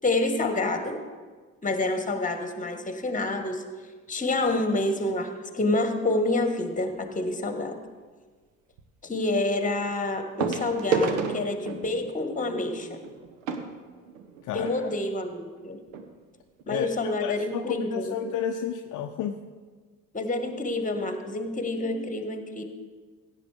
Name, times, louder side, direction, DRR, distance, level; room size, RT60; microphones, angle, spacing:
voice 1, 0.0-1.0 1.6-3.6 4.1-7.8 9.0-13.0 14.5-15.8 16.7-18.2 20.1-22.6, left 2 dB, 20° left, 7 dB, 1.4 m, -28 dB
sound 1, 6.8-7.1 8.8-8.9 10.4-14.8 15.6-15.7 15.9-16.1 16.6-16.7, right 4 dB, 70° right, 1.0 m, -31 dB
voice 2, 14.4-14.9 16.7-19.4, left 8 dB, 50° left, 6 dB, 0.6 m, -32 dB
16.0 x 8.6 x 3.4 m, 1.5 s
figure-of-eight pair, 50°, 40 cm